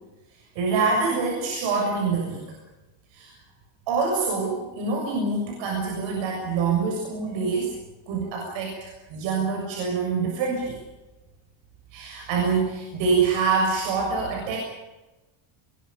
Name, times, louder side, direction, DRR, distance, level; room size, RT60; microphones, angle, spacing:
voice 1, 0.6-2.4 3.1-3.3 3.9-7.7 8.1-10.8 11.9-14.6, right 4 dB, 65° right, -1 dB, 7.1 m, -25 dB
24.0 x 22.5 x 6.9 m, 1.1 s
cardioid pair, 170°, 48 cm